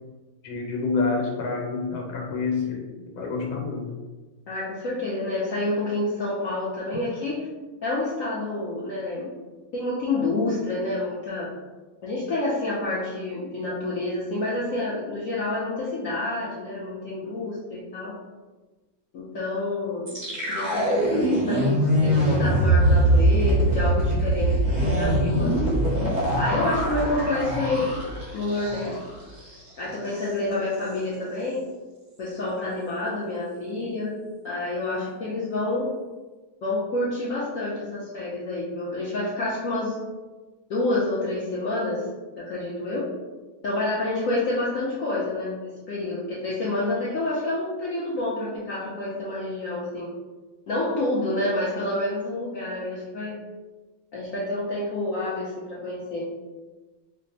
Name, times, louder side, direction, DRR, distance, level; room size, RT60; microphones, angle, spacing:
voice 1, 0.4-2.8 3.1-3.9, left 4 dB, 90° left, 1 dB, 1.6 m, -27 dB
voice 2, 4.5-7.5 7.8-9.3 9.7-11.5 12.0-18.2 19.1-20.2 20.5-24.5 24.8-25.8 26.3-27.9 28.3-29.0 29.8-31.6 32.2-34.1 34.4-35.9 36.6-40.0 40.7-42.1 42.4-43.1 43.6-50.1 50.7-53.4 54.1-56.3, left 2 dB, 70° left, -6 dB, 0.7 m, -28 dB
sound 1, 20.1-29.1 29.4-29.6 29.9-30.3, right 1 dB, 60° right, 0.4 m, -22 dB
3.3 x 2.0 x 3.9 m, 1.2 s
omnidirectional pair, 2.1 m